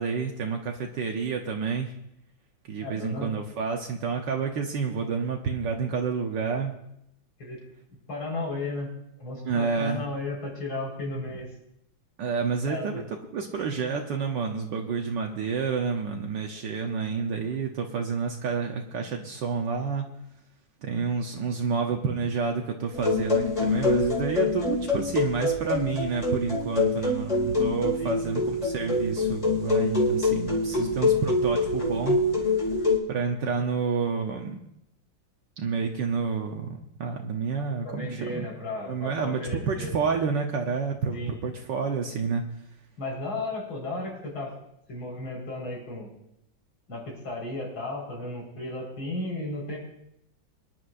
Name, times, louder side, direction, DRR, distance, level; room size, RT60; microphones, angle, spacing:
voice 1, 0.0-1.9 2.7-6.7 9.4-10.1 12.2-20.1 20.8-32.5 33.1-34.6 35.6-38.4 38.8-42.4, right 5 dB, 65° right, 2 dB, 1.5 m, -29 dB
voice 2, 2.8-3.3 7.4-7.6 8.1-11.5 12.7-13.0 28.0-28.2 37.8-39.9 41.1-41.3 43.0-44.5 44.9-46.1 46.9-49.8, left 2 dB, 90° left, -2 dB, 5.5 m, -34 dB
sound 1, 22.9-33.0, left 2 dB, 20° left, 2.6 m, -25 dB
23.5 x 10.5 x 2.6 m, 0.77 s
omnidirectional pair, 2.1 m